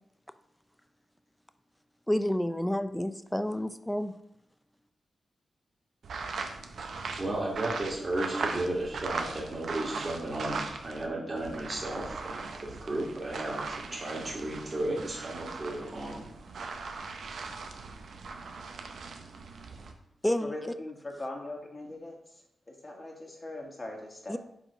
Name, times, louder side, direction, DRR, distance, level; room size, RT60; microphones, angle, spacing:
voice 1, 2.1-4.1 20.2-20.6 24.3-24.4, left 1 dB, 5° left, 10 dB, 0.5 m, -29 dB
sound 1, 6.0-11.1 11.4-19.9, right 4 dB, 75° right, 0.6 m, -39 dB
voice 2, 7.2-16.2, right 1 dB, 40° right, -3 dB, 1.6 m, -34 dB
voice 3, 20.4-22.1 22.8-24.4, left 2 dB, 35° left, 1 dB, 1.5 m, -40 dB
5.0 x 3.7 x 5.0 m, 0.78 s
cardioid pair, 50°, 0 cm